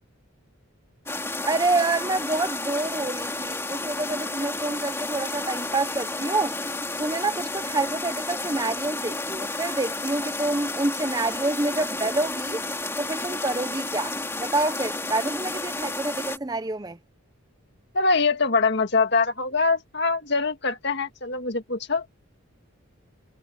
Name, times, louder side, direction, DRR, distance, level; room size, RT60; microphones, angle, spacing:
sound 1, 1.1-16.4, left 2 dB, 10° left, 3.0 m, -31 dB
voice 1, 1.4-6.6 7.0-12.6 13.0-17.0, right 2 dB, 20° right, 0.7 m, -27 dB
voice 2, 17.9-22.1, left 4 dB, 50° left, 2.0 m, -23 dB
head